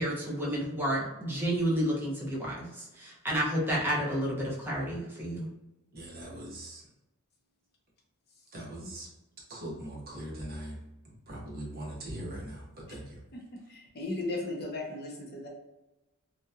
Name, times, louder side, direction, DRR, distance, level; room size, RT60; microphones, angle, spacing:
voice 1, 0.0-5.5, right 1 dB, 10° right, -5 dB, 0.6 m, -31 dB
voice 2, 5.9-6.8 8.5-9.1 9.5-10.8 11.3-13.2, right 1 dB, 45° right, -3 dB, 0.8 m, -41 dB
voice 3, 13.3-15.5, left 2 dB, 45° left, -1 dB, 0.7 m, -36 dB
2.8 x 2.1 x 2.3 m, 0.97 s
head